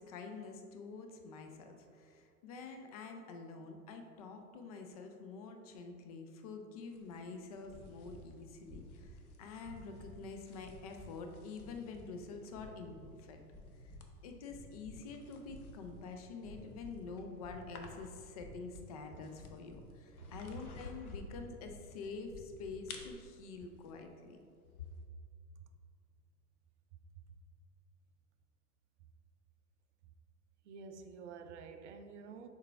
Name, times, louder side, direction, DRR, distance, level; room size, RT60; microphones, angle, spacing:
voice 1, 0.0-13.4 13.8-13.9 14.2-24.4, left 4 dB, 25° left, 0.3 m, -47 dB
sound 1, 6.8-25.0, left 3 dB, 65° left, 0.8 m, -57 dB
sound 2, 7.6-8.3 8.6-9.2 9.6-10.2 10.6-11.2 11.5-12.1 12.5-13.2 13.5-14.1 14.4-15.1 15.4-16.0 16.4-17.0 17.4-17.9 18.3-18.9 19.3-19.9 20.3-20.9 21.3-21.8 22.2-22.8, left 1 dB, ahead, 1.5 m, -54 dB
voice 2, 30.6-32.5, right 5 dB, 50° right, 0.5 m, -50 dB
6.5 x 4.5 x 3.4 m
figure-of-eight pair, 95°, 47 cm